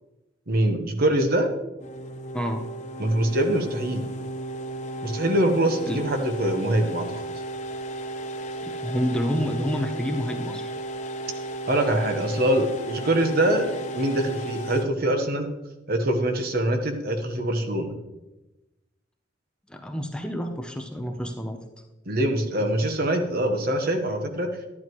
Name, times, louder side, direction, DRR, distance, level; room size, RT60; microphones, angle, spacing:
voice 1, 0.5-1.5 3.0-4.1 5.0-7.2 11.7-15.5 15.9-17.9 22.1-24.6, right 1 dB, 50° right, 6 dB, 1.1 m, -24 dB
sound 1, 1.8-14.8, right 1 dB, 40° left, 0.8 m, -34 dB
voice 2, 8.7-10.7 19.7-21.6, equal, 5° left, 3 dB, 0.7 m, -28 dB
11.0 x 11.0 x 3.1 m, 1.0 s
head